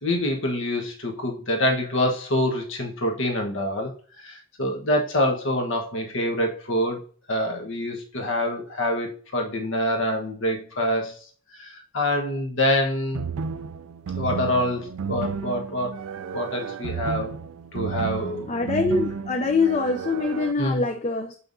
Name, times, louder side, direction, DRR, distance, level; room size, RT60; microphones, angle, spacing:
voice 1, 0.0-3.9 4.2-7.0 7.3-11.2 11.6-13.2 14.2-15.9 16.3-17.4 17.7-18.6 20.6-20.8, left 1 dB, 60° left, 1.3 m, -26 dB
sound 1, 13.1-20.5, right 6 dB, 85° right, 0.4 m, -32 dB
voice 2, 18.5-21.3, left 3 dB, 30° left, 0.5 m, -24 dB
6.8 x 5.6 x 2.7 m
head